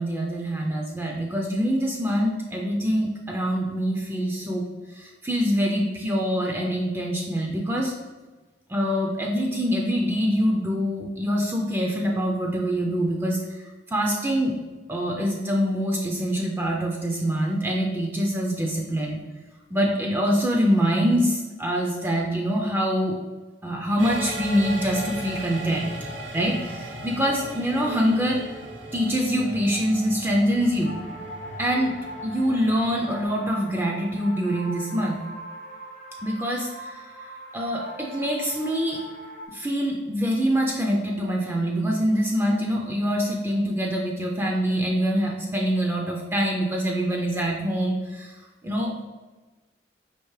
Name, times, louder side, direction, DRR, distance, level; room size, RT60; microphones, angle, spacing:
voice 1, 0.0-4.7 4.9-7.9 8.7-14.5 14.9-19.2 19.7-23.2 23.6-25.9 26.3-28.4 28.9-31.0 31.6-32.0 32.2-35.2 36.2-39.0 39.5-48.3 48.6-49.1, equal, 15° right, -1 dB, 0.4 m, -25 dB
sound 1, 24.0-33.3, right 1 dB, 75° right, 0.8 m, -37 dB
sound 2, 30.8-39.5, equal, 45° left, 0.7 m, -41 dB
4.5 x 2.8 x 3.1 m, 1.2 s
head